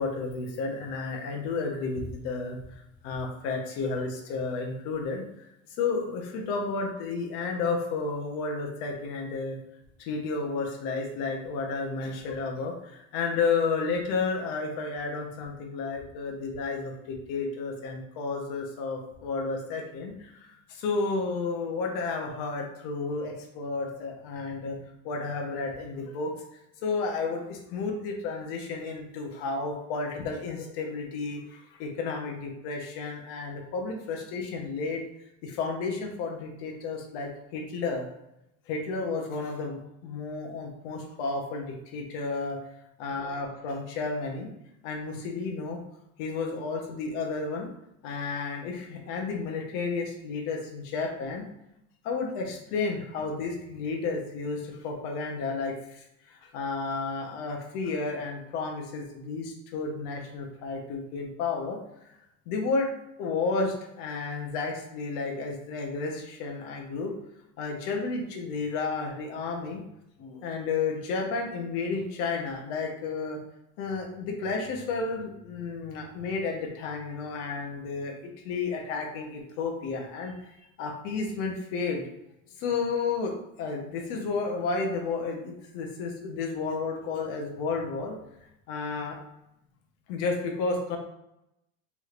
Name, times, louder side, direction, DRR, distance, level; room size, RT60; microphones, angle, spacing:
voice 1, 0.0-5.5 5.8-9.6 10.0-24.8 25.0-26.3 26.8-35.0 35.4-38.1 38.7-42.6 43.0-44.5 44.8-45.8 46.2-47.7 48.0-51.5 52.0-61.8 62.0-62.1 62.5-62.9 63.2-67.1 67.6-69.8 70.2-73.4 73.8-78.2 78.4-80.4 80.8-82.1 82.6-88.2 88.7-89.2 90.1-91.0, left 4 dB, 40° left, 2 dB, 0.8 m, -32 dB
4.8 x 3.2 x 2.4 m, 0.84 s
supercardioid pair, 180°, 34 cm